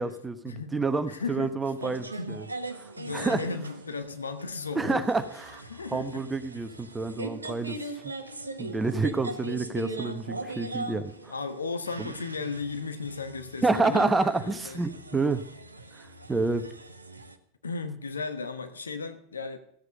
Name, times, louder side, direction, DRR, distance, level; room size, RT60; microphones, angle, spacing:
voice 1, 0.0-2.4 2.8-3.4 4.7-5.6 5.9-7.8 8.0-8.1 8.6-11.1 12.0-12.1 13.6-15.4 16.0-16.6, right 3 dB, 15° right, 10 dB, 1.1 m, -28 dB
voice 2, 1.1-1.6 2.2-2.4 3.0-5.1 5.7-6.3 7.7-8.0 9.4-9.5 10.9-15.3 17.6-19.6, left 4 dB, 80° left, 9 dB, 1.1 m, -36 dB
sound 1, 1.8-17.4, right 2 dB, 85° right, 0.9 m, -41 dB
14.5 x 8.1 x 6.4 m, 0.71 s
figure-of-eight pair, 85°, 0 cm